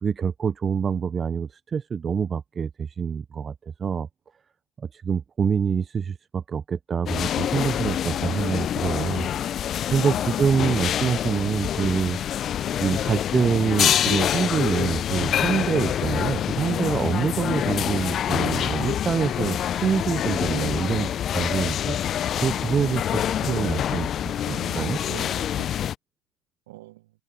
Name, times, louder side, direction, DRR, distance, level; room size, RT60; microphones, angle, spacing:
voice 1, 0.0-3.5 3.8-4.1 4.9-9.6 9.9-12.2 12.8-22.0 22.4-25.0, right 6 dB, 25° right, 0.7 m, -26 dB
sound 1, 7.1-25.9, left 10 dB, 35° left, 0.7 m, -26 dB
voice 2, 9.9-10.4 24.5-25.7 26.7-27.1, right 18 dB, 65° right, 1.5 m, -43 dB
figure-of-eight pair, 75°, 0 cm